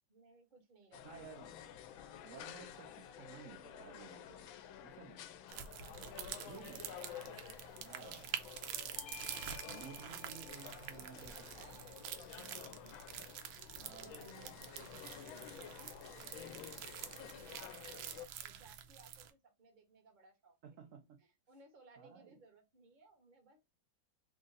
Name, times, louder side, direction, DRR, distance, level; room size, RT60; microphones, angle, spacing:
voice 1, 0.1-1.3 4.7-5.1 5.5-6.9 9.8-13.4 13.6-20.8 21.2-23.6, right 3 dB, 35° right, 0.9 m, -63 dB
sound 1, 0.9-18.3, left 10 dB, 85° left, 1.4 m, -52 dB
voice 2, 1.0-1.6 2.2-4.5 4.8-5.3 6.5-8.4 9.6-11.8 13.8-15.0 20.6-21.2 22.0-22.4, right 8 dB, 65° right, 0.8 m, -55 dB
sound 2, 5.5-19.3, right 9 dB, 90° right, 1.4 m, -47 dB
Bell / Doorbell, 9.0-13.8, left 14 dB, 70° left, 0.8 m, -57 dB
3.6 x 2.5 x 3.9 m
omnidirectional pair, 2.1 m